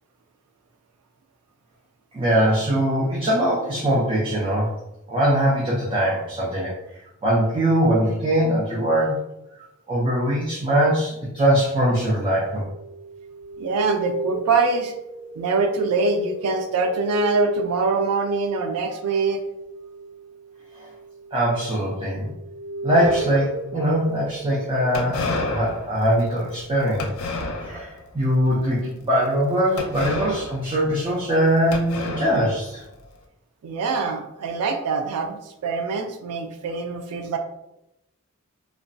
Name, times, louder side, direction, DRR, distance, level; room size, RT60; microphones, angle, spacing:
voice 1, 2.1-4.7 5.1-9.2 9.9-12.6 20.8-20.9 21.3-22.2 22.8-27.1 27.6-32.8, equal, 20° right, -7 dB, 0.5 m, -22 dB
sound 1, 12.4-21.8 22.1-25.9, right 3 dB, 35° left, 0.7 m, -36 dB
voice 2, 13.6-14.9 15.4-19.4 33.6-37.4, right 3 dB, 85° right, 5 dB, 0.4 m, -24 dB
sound 2, 22.9-23.7 24.9-28.0 28.4-28.8 29.8-31.4 31.7-33.0, left 2 dB, 75° left, 0.5 m, -31 dB
2.9 x 2.2 x 2.6 m, 0.89 s
head